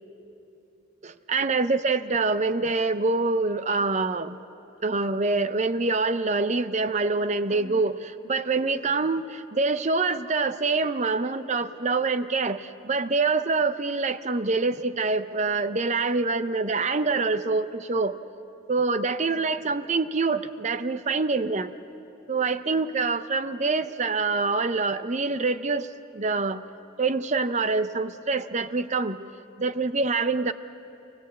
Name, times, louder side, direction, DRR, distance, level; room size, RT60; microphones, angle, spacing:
voice 1, 1.0-4.4 4.8-18.2 18.7-21.7 22.3-25.9 26.1-26.6 27.0-29.3 29.6-30.5, right 3 dB, 35° right, 12 dB, 0.6 m, -25 dB
27.0 x 17.0 x 8.4 m, 2.9 s
head